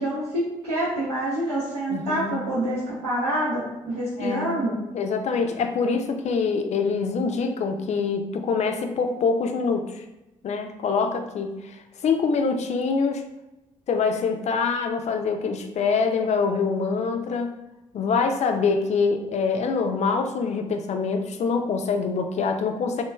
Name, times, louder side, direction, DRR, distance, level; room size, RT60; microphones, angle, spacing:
voice 1, 0.0-4.8, right 1 dB, 90° right, -13 dB, 0.8 m, -27 dB
voice 2, 1.9-2.4 4.2-4.5 4.9-10.0 10.4-11.8 12.0-13.2 13.9-17.6 17.9-23.0, left 5 dB, 55° left, 5 dB, 0.4 m, -25 dB
3.0 x 2.2 x 2.2 m, 0.99 s
hypercardioid pair, 45°, 14 cm